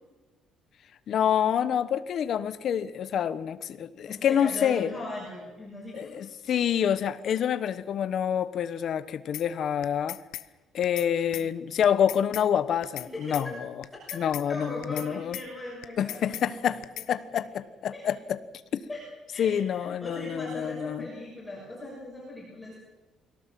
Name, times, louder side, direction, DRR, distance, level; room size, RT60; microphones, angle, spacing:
voice 1, 1.1-4.9 5.9-10.2 10.7-13.5 14.1-15.4 16.0-16.8 17.1-18.4 18.7-18.8 19.4-21.1, left 9 dB, 45° left, 13 dB, 1.0 m, -27 dB
voice 2, 4.1-6.2 13.0-13.6 13.9-14.1 14.5-16.8 17.9-18.0 18.9-19.0 19.3-22.8, left 1 dB, 10° left, -4 dB, 6.1 m, -39 dB
sound 1, 9.3-9.5 9.8-10.5 10.8-11.1 11.3-11.5 11.8-12.5 12.8-13.1 13.3-13.5 13.8-14.5 14.8-15.1 15.3-15.5 15.8-16.5 16.8-17.1, left 14 dB, 75° left, 0.9 m, -38 dB
22.0 x 17.5 x 7.6 m, 1.2 s
cardioid pair, 170°, 0 cm